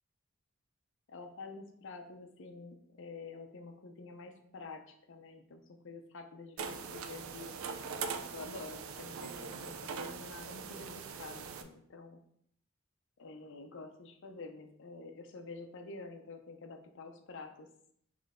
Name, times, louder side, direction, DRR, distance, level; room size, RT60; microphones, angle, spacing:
voice 1, 1.1-7.5 8.3-12.2 13.2-17.7, left 3 dB, 65° left, 6 dB, 0.5 m, -48 dB
sound 1, 6.6-11.6, right 5 dB, 75° right, 0.4 m, -42 dB
3.9 x 3.1 x 3.7 m, 0.68 s
head